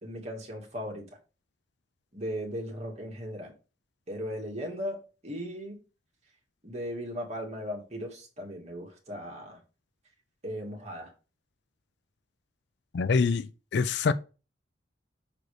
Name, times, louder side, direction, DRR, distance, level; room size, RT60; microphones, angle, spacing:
voice 1, 0.0-1.0 2.1-3.5 4.1-5.8 6.6-9.6 10.4-11.1, equal, 35° right, 2.0 m, -37 dB
voice 2, 12.9-14.1, left 5 dB, 60° left, 0.4 m, -25 dB
6.5 x 4.0 x 4.8 m
head